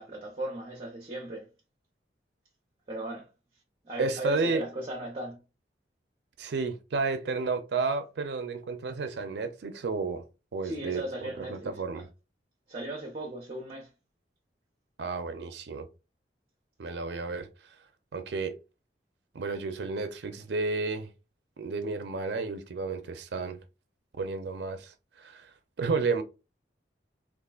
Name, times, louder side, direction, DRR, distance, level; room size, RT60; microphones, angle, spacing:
voice 1, 0.0-1.5 2.9-3.3 3.8-5.4 10.6-12.0 12.7-13.9, right 1 dB, 30° right, 0.7 m, -36 dB
voice 2, 4.0-4.6 6.4-10.3 10.5-12.1 15.0-15.9 16.8-17.8 18.1-18.6 19.3-21.1 21.6-23.6 24.1-26.2, right 4 dB, 75° right, 0.4 m, -32 dB
3.6 x 2.4 x 2.3 m
head